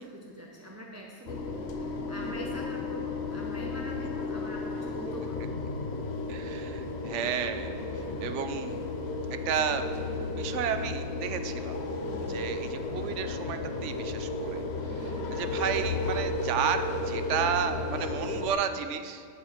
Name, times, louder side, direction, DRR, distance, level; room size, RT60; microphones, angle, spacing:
voice 1, 0.0-5.7 12.0-12.5 14.9-15.4, right 1 dB, 15° right, -1 dB, 0.5 m, -43 dB
sound 1, 1.3-18.5, left 3 dB, 55° left, 0.9 m, -33 dB
voice 2, 6.3-8.8 9.5-9.9 10.4-11.8 12.3-19.3, right 8 dB, 65° right, 9 dB, 0.8 m, -32 dB
10.5 x 7.3 x 4.4 m, 2.1 s
omnidirectional pair, 1.6 m